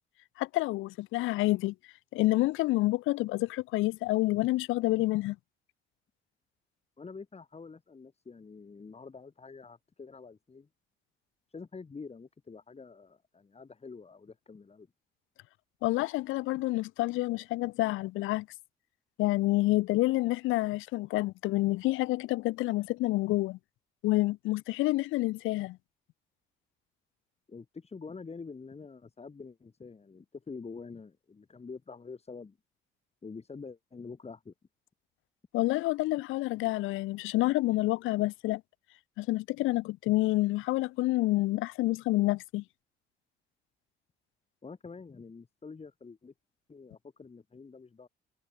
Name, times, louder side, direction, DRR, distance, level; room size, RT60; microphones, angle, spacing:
voice 1, 0.4-1.7 2.1-5.4 15.8-18.5 19.2-23.6 24.0-25.8 35.5-38.6 39.2-42.6, left 18 dB, 90° left, 0.5 m, -28 dB
voice 2, 7.0-10.7 11.5-14.9 27.5-32.6 33.2-34.5 44.6-46.3 46.7-48.1, left 4 dB, 30° left, 6.0 m, -46 dB
cardioid pair, 90°, 20 cm